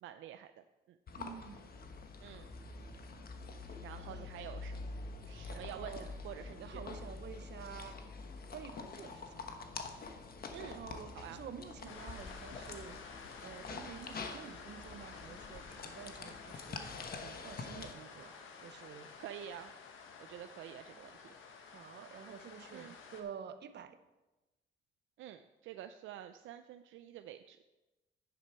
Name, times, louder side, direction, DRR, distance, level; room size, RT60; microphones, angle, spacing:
voice 1, 0.0-1.0 2.2-2.5 3.8-4.8 5.2-6.8 10.5-10.9 11.1-11.4 19.2-19.7 20.2-21.4 22.7-23.0 25.2-27.6, right 11 dB, 80° right, 9 dB, 0.5 m, -48 dB
sound 1, 1.1-17.9, left 4 dB, 50° left, 1.3 m, -46 dB
voice 2, 1.2-1.7 4.1-4.5 5.5-6.1 6.6-8.0 8.5-9.5 10.6-18.3 18.6-19.1 21.7-24.0, right 8 dB, 60° right, 10 dB, 1.0 m, -50 dB
sound 2, 11.9-23.2, left 5 dB, 85° left, 1.6 m, -52 dB
11.0 x 9.9 x 4.6 m, 1.1 s
cardioid pair, 90°, 20 cm